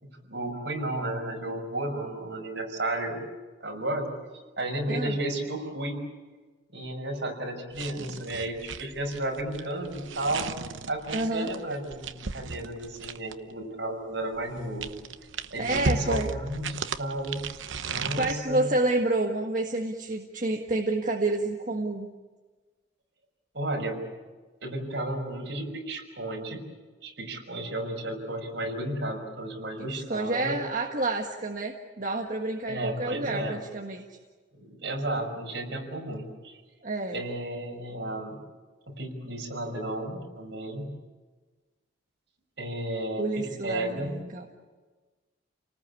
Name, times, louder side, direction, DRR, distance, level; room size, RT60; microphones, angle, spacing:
voice 1, 0.0-3.3 3.6-4.1 4.6-6.0 6.7-10.5 10.9-14.9 15.5-17.4 17.8-18.7 23.5-24.1 24.6-26.6 27.0-30.6 32.7-33.6 34.5-36.6 37.1-38.4 38.9-40.9 42.6-44.2, right 1 dB, 65° right, 1 dB, 5.9 m, -33 dB
sound 1, 7.7-13.5 14.4-18.3, right 4 dB, 85° right, 1.0 m, -35 dB
voice 2, 11.1-11.5 15.6-16.3 18.2-22.1 30.1-34.0 36.8-37.2 43.2-44.5, right 2 dB, 45° right, 1 dB, 1.7 m, -29 dB
29.5 x 19.5 x 8.5 m, 1.3 s
head